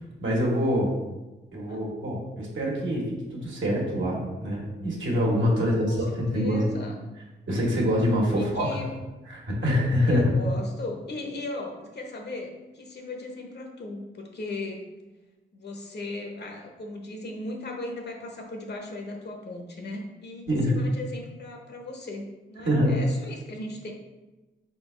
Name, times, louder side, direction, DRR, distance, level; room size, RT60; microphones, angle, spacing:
voice 1, 0.2-0.9 1.5-3.0 3.3-6.1 6.3-6.6 7.5-8.7 9.3-10.2 20.5-20.7 22.6-23.0, equal, 70° right, -3 dB, 1.4 m, -25 dB
voice 2, 5.6-7.0 8.3-9.0 10.0-14.9 15.5-23.9, left 2 dB, 55° left, 1 dB, 0.9 m, -37 dB
4.4 x 3.4 x 3.2 m, 1.1 s
cardioid pair, 70°, 20 cm